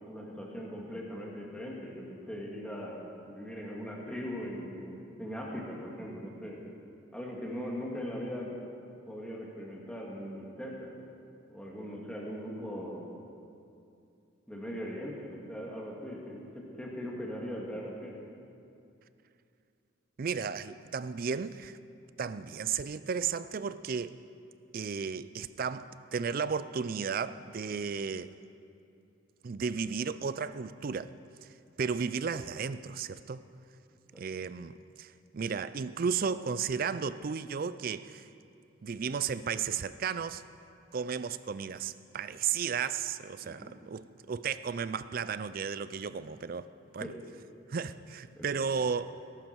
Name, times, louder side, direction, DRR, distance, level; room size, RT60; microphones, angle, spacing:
voice 1, 0.1-3.0 3.3-6.6 7.1-8.5 9.1-10.9 11.5-13.0 14.5-18.2 34.1-34.2 43.4-43.8 47.0-47.1 48.4-48.6, equal, 5° left, 2.0 m, -40 dB
voice 2, 20.2-21.8 22.2-24.2 24.7-28.3 29.4-31.1 31.4-31.5 31.8-33.4 34.2-38.3 38.8-40.4 40.9-47.1 47.7-49.2, right 6 dB, 45° right, 0.4 m, -34 dB
19.0 x 11.5 x 4.6 m
head